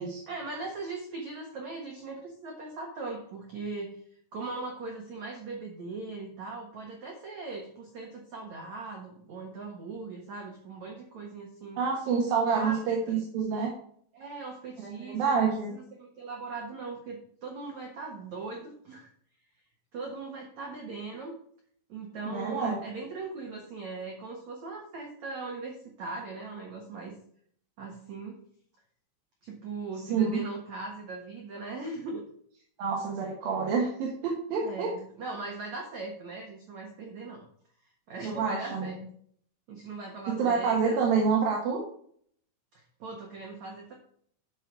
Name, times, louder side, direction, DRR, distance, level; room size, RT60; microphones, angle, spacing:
voice 1, 0.3-3.9 4.3-11.8 12.5-12.8 13.1-13.2 14.1-19.1 19.9-21.3 21.9-27.1 27.8-28.4 29.4-32.3 34.6-37.5 38.1-39.0 39.7-41.0 43.0-43.9, right 3 dB, 80° right, 1 dB, 1.6 m, -39 dB
voice 2, 11.8-13.7 14.8-15.7 22.2-22.8 30.1-30.4 32.8-34.9 38.2-38.9 40.3-41.8, right 5 dB, 60° right, -1 dB, 2.6 m, -27 dB
11.5 x 6.8 x 4.7 m, 0.62 s
omnidirectional pair, 5.8 m